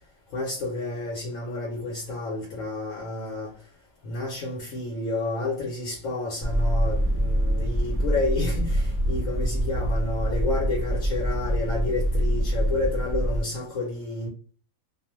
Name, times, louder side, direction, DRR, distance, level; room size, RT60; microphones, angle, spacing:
voice 1, 0.3-3.5 4.0-14.3, left 2 dB, 70° left, 1.0 m, -30 dB
sound 1, 6.4-13.4, equal, 10° left, 1.0 m, -25 dB
2.5 x 2.0 x 2.9 m
omnidirectional pair, 1.5 m